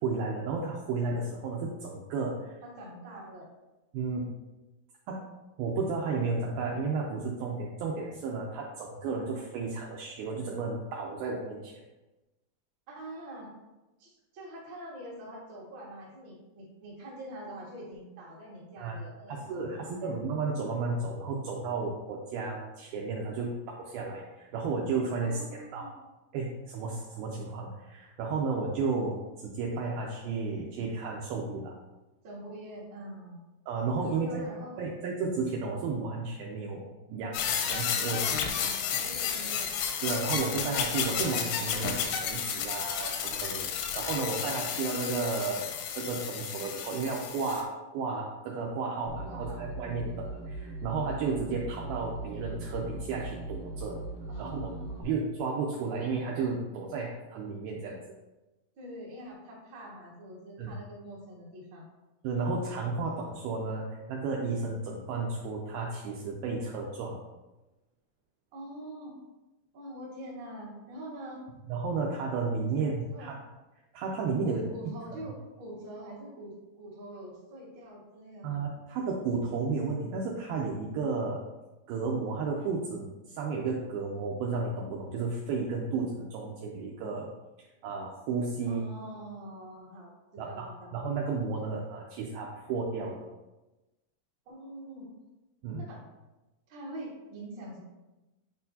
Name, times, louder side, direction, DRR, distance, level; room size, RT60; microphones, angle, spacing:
voice 1, 0.0-2.6 3.9-4.3 5.1-5.2 5.6-11.8 18.8-19.0 19.3-25.9 26.3-31.7 33.7-34.5 34.8-38.2 40.0-54.0 54.4-54.7 55.0-58.0 60.6-60.8 62.2-67.2 71.7-73.3 73.9-74.6 78.4-81.4 81.9-87.3 87.8-88.8 90.4-93.2 95.6-95.8, right 4 dB, 85° right, -1 dB, 2.2 m, -33 dB
voice 2, 2.6-3.5 12.9-13.5 14.0-20.2 25.2-25.9 32.2-33.4 34.0-34.9 38.2-39.7 49.3-49.7 54.3-55.0 58.7-61.9 68.5-69.1 69.7-71.4 72.7-73.3 74.4-78.7 88.7-90.9 94.4-95.1 95.7-96.0 96.7-97.8, right 1 dB, 45° right, -5 dB, 1.5 m, -45 dB
sound 1, 37.3-47.6, left 7 dB, 90° left, 2.8 m, -32 dB
sound 2, 49.1-55.0, right 2 dB, 65° right, 2.4 m, -39 dB
8.8 x 4.4 x 2.7 m, 1.1 s
omnidirectional pair, 4.9 m